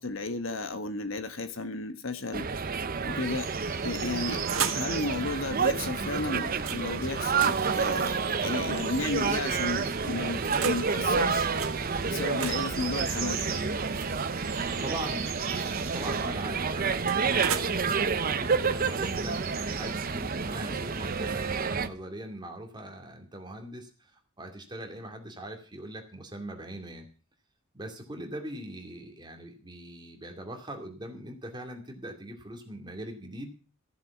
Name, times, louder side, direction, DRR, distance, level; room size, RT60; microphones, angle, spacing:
voice 1, 0.0-2.5 3.0-3.5 3.8-4.4 4.7-8.1 8.4-11.5 12.0-13.6, left 3 dB, 70° left, 10 dB, 1.4 m, -33 dB
sound 1, 2.3-21.9, right 5 dB, 45° right, 0.7 m, -29 dB
sound 2, 3.2-21.6, right 7 dB, 70° right, 3.0 m, -41 dB
sound 3, 4.1-4.9 6.6-6.8 7.2-9.1 9.9-10.9 11.6-11.7 12.2-14.9 16.0-17.7, right 7 dB, 85° right, 1.6 m, -37 dB
voice 2, 14.6-27.1 27.7-33.5, right 1 dB, 20° right, 3 dB, 2.5 m, -41 dB
14.5 x 7.4 x 7.1 m, 0.37 s
head